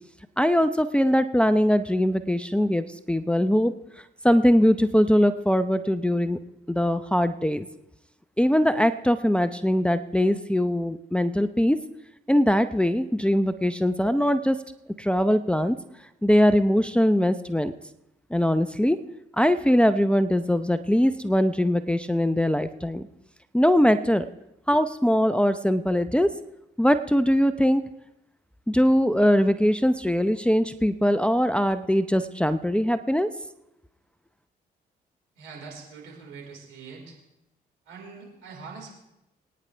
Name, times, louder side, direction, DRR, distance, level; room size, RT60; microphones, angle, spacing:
voice 1, 0.4-3.7 4.2-6.4 6.7-7.7 8.4-11.8 12.3-14.6 15.0-15.8 16.2-17.7 18.3-19.0 19.4-23.1 23.5-24.3 24.7-26.3 26.8-27.8 28.7-33.3, equal, 5° left, 10 dB, 0.7 m, -21 dB
voice 2, 35.3-37.2 37.8-38.9, right 5 dB, 75° right, -1 dB, 4.6 m, -43 dB
23.0 x 9.8 x 3.4 m, 0.88 s
hypercardioid pair, 45°, 20 cm